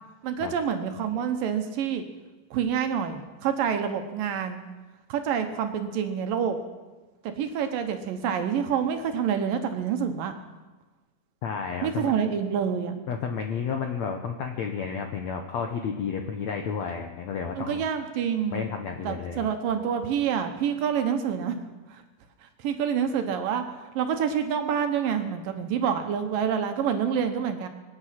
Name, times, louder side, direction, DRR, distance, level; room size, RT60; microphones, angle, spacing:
voice 1, 0.2-2.0 2.5-4.6 5.1-6.6 7.2-10.3 11.8-13.0 17.6-18.6 19.0-21.6 21.9-22.0 22.6-23.6 24.0-27.7, right 8 dB, 70° right, 6 dB, 2.5 m, -27 dB
voice 2, 11.4-12.1 13.1-17.8 18.5-19.5, left 6 dB, 75° left, 4 dB, 1.6 m, -31 dB
24.5 x 9.6 x 5.8 m, 1.2 s
omnidirectional pair, 4.5 m